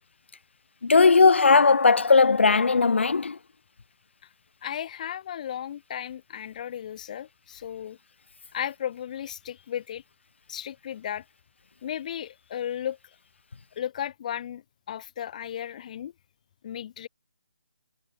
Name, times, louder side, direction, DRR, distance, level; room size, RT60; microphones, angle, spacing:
voice 1, 0.8-3.4, left 4 dB, 65° left, 1.9 m, -18 dB
voice 2, 4.6-8.0 8.5-10.0 10.5-11.2 11.8-13.0 13.8-16.1 16.6-17.1, left 10 dB, 35° left, 4.8 m, -35 dB
figure-of-eight pair, 155°, 7 cm